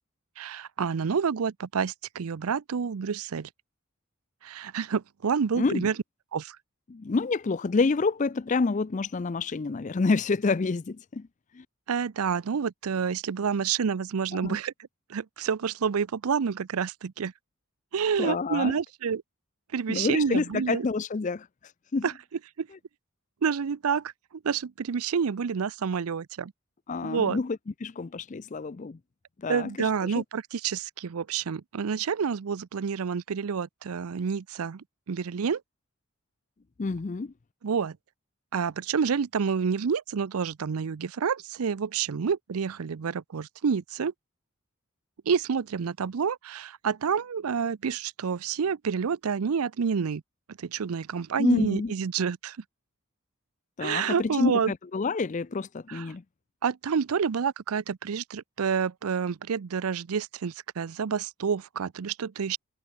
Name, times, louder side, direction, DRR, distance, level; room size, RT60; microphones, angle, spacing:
voice 1, 0.4-3.5 4.4-5.9 6.3-6.6 11.9-14.7 15.1-17.3 17.9-19.2 19.7-20.9 22.0-22.1 22.6-22.7 23.4-24.1 24.4-26.5 27.0-27.4 29.5-35.6 37.6-38.0 38.5-44.1 45.3-50.2 50.6-52.6 53.8-54.7 55.9-56.0 56.6-62.6, right 6 dB, 85° right, 0.5 m, -28 dB
voice 2, 5.5-5.9 6.9-11.3 11.5-11.6 14.3-14.6 18.2-18.8 19.9-21.5 21.9-22.1 26.9-29.0 29.4-30.2 36.8-37.3 51.4-51.9 53.8-56.2, left 4 dB, 35° left, 0.4 m, -28 dB
head